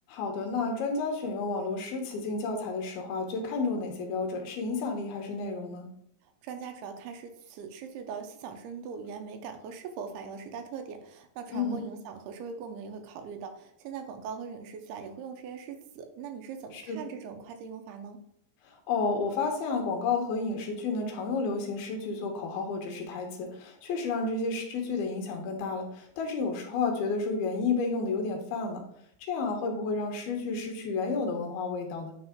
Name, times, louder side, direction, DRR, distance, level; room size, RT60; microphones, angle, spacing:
voice 1, 0.1-5.9 11.5-11.9 16.7-17.0 18.6-28.8 29.2-32.1, left 4 dB, 75° left, 2 dB, 2.9 m, -31 dB
voice 2, 6.4-18.2, right 6 dB, 90° right, 6 dB, 2.7 m, -41 dB
9.7 x 3.5 x 3.7 m, 0.70 s
omnidirectional pair, 4.6 m